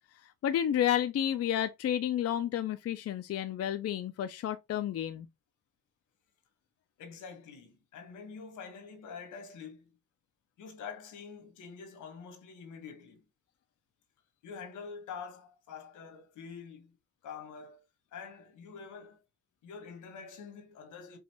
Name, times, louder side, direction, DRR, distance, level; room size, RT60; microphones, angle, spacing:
voice 1, 0.4-5.3, left 10 dB, 50° left, 0.5 m, -31 dB
voice 2, 7.0-9.9 10.6-13.2 14.4-17.0 17.2-17.8 18.1-19.2 19.6-21.2, left 6 dB, 80° left, 1.5 m, -46 dB
5.4 x 2.5 x 2.9 m
cardioid pair, 90°, 30 cm